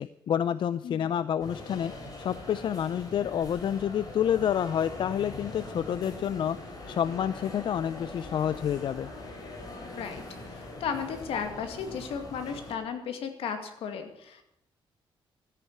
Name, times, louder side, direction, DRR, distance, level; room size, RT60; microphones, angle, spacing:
voice 1, 0.0-1.9 2.2-6.6 6.9-9.1, left 9 dB, 55° left, 15 dB, 0.4 m, -29 dB
sound 1, 1.4-12.7, left 2 dB, 40° left, 4.1 m, -42 dB
voice 2, 9.8-14.4, left 6 dB, 80° left, 7 dB, 2.1 m, -35 dB
13.5 x 9.1 x 8.7 m, 0.79 s
cardioid pair, 115°, 10 cm